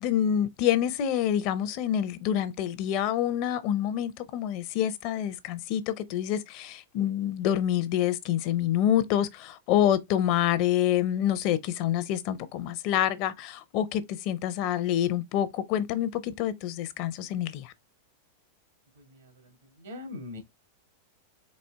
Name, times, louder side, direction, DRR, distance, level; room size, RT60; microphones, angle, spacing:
voice 1, 0.0-17.7, left 11 dB, 50° left, 0.6 m, -27 dB
voice 2, 19.0-20.4, left 2 dB, 85° right, 1.7 m, -43 dB
4.3 x 2.4 x 3.4 m
supercardioid pair, 130°, 0 cm